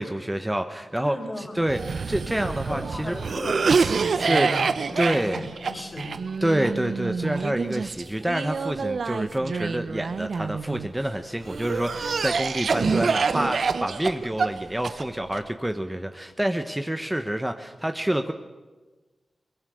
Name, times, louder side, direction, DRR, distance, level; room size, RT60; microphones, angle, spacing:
voice 1, 0.0-3.2 4.3-4.5 5.0-5.5 6.4-18.3, right 1 dB, 15° right, 7 dB, 1.2 m, -27 dB
voice 2, 1.0-1.7 2.6-6.2, left 1 dB, 35° left, 4 dB, 4.1 m, -36 dB
Cough, 1.7-10.9 11.5-15.4, right 5 dB, 75° right, 0.7 m, -27 dB
22.5 x 19.0 x 6.5 m, 1.3 s
cardioid pair, 45°, 0 cm